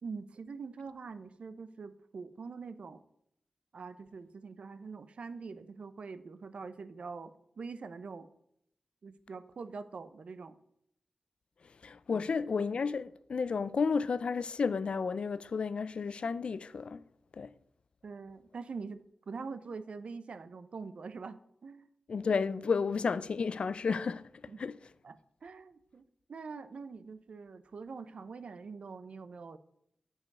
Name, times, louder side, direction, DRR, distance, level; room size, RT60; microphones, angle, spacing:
voice 1, 0.0-3.0 3.7-8.3 9.0-10.6 12.1-12.2 18.0-19.0 19.3-21.9 24.5-24.6 25.0-29.6, right 4 dB, 70° right, 0.6 m, -44 dB
voice 2, 11.8-17.0 17.3-17.5 22.1-24.3 24.6-24.8, left 5 dB, 65° left, 0.3 m, -32 dB
9.4 x 4.8 x 5.3 m
wide cardioid pair, 130°, 2 cm